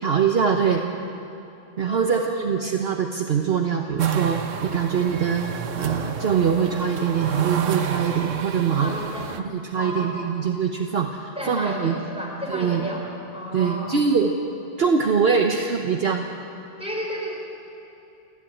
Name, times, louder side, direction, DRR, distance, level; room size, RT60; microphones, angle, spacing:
voice 1, 0.0-0.8 1.8-5.4 5.8-8.9 9.4-12.0 12.5-12.8 13.5-14.3 14.8-16.3, right 6 dB, 55° right, 3 dB, 1.2 m, -23 dB
voice 2, 1.8-2.3 8.8-9.3 9.7-10.3 11.4-13.1 13.3-13.9 16.8-17.4, equal, 5° right, -3 dB, 4.9 m, -32 dB
sound 1, 4.0-9.4, right 8 dB, 90° right, 1.3 m, -29 dB
29.5 x 11.0 x 8.7 m, 2.8 s
omnidirectional pair, 1.3 m